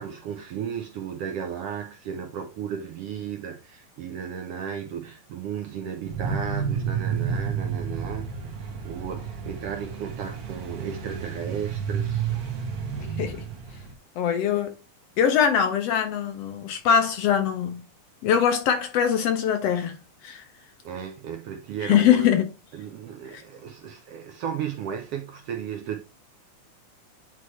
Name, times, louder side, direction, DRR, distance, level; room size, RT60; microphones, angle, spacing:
voice 1, 0.0-8.3 8.8-12.3 20.8-22.3 22.7-26.0, right 8 dB, 75° right, 1.4 m, -34 dB
sound 1, 6.0-13.9, right 6 dB, 60° right, 1.0 m, -31 dB
voice 2, 14.2-14.7 15.2-17.8 18.2-20.0 20.2-20.4 21.8-22.5 23.3-23.4, left 8 dB, 75° left, 1.6 m, -22 dB
9.3 x 3.3 x 3.2 m
omnidirectional pair, 3.3 m